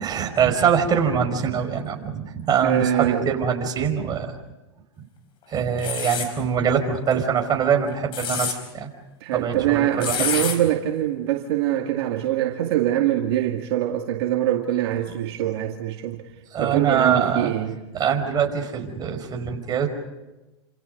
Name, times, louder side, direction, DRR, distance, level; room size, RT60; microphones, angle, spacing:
voice 1, 0.0-4.3 5.5-8.9 9.3-10.5 16.5-17.5 17.9-19.9, right 7 dB, 25° right, 5.1 m, -23 dB
voice 2, 2.6-3.3 9.2-16.2 16.6-17.8, right 12 dB, 60° right, 2.1 m, -23 dB
sound 1, 5.8-6.3 7.9-8.6 10.0-10.6, left 7 dB, 35° left, 5.1 m, -27 dB
29.0 x 27.5 x 5.3 m
hypercardioid pair, 120°, 15 cm